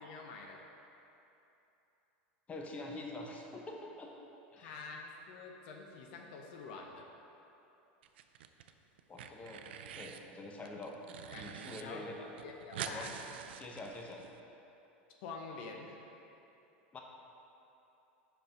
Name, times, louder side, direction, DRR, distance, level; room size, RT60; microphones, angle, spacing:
voice 1, 0.0-0.6 4.6-7.1 11.3-11.5 11.8-12.0 12.4-13.1 15.2-16.0, left 4 dB, 65° left, 1 dB, 0.8 m, -47 dB
voice 2, 2.5-4.1 4.5-4.8 9.1-11.0 11.3-12.3 12.9-13.1 13.6-14.2 16.9-17.0, left 2 dB, 25° left, 0 dB, 0.9 m, -46 dB
sound 1, 8.0-8.7 9.0-10.2 10.6-11.8 12.1-12.2 12.4-14.3, right 8 dB, 80° right, 0.4 m, -46 dB
5.5 x 5.4 x 5.7 m, 2.9 s
hypercardioid pair, 105°, 6 cm